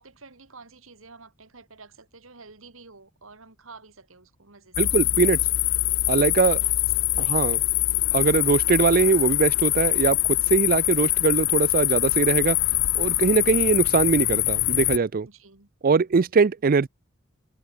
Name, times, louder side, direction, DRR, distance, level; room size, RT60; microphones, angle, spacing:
voice 1, 0.0-5.0 6.4-6.8 7.1-7.5 10.7-11.1 15.3-15.7, right 4 dB, 80° right, 2.9 m, -49 dB
sound 1, 4.7-15.0, left 18 dB, 70° left, 0.4 m, -23 dB
voice 2, 4.8-5.4 6.1-6.6 7.3-7.6 8.1-12.6 13.0-15.3 15.8-16.9, right 5 dB, 45° right, 0.5 m, -21 dB
head